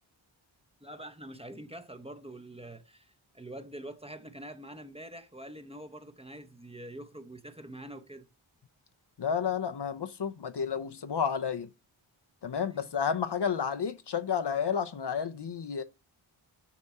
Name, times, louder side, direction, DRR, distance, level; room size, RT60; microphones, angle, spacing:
voice 1, 0.8-8.3 12.8-12.9, right 1 dB, 10° right, 0.8 m, -45 dB
voice 2, 9.2-11.7 12.4-15.8, left 7 dB, 55° left, 0.7 m, -31 dB
7.4 x 4.3 x 5.4 m
cardioid pair, 45°, 49 cm